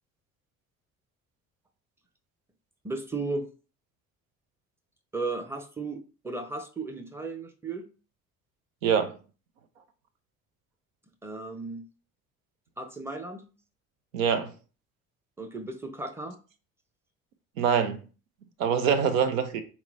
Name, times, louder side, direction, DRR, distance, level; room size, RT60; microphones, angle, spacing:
voice 1, 2.8-3.5 5.1-7.9 11.2-11.9 12.8-13.4 15.4-16.4, right 3 dB, 5° right, 0.7 m, -35 dB
voice 2, 8.8-9.2 14.1-14.5 17.6-18.0 18.6-19.6, right 7 dB, 75° right, 0.6 m, -24 dB
4.2 x 3.0 x 2.5 m
figure-of-eight pair, 55°, 40 cm